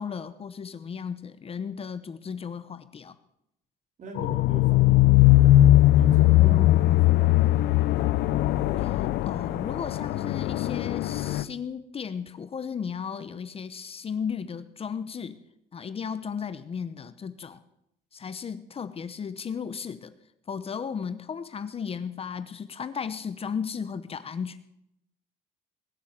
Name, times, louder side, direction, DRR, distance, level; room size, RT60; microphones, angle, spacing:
voice 1, 0.0-3.1 6.3-6.7 8.8-15.4 15.7-17.6 18.1-20.1 20.5-24.6, left 6 dB, 35° left, 13 dB, 0.9 m, -35 dB
voice 2, 4.0-5.5 6.0-8.1, right 3 dB, 50° right, 3 dB, 3.6 m, -44 dB
sound 1, 4.2-11.4, left 15 dB, 80° left, 0.6 m, -20 dB
20.0 x 7.4 x 7.5 m, 0.81 s
cardioid pair, 110°, 17 cm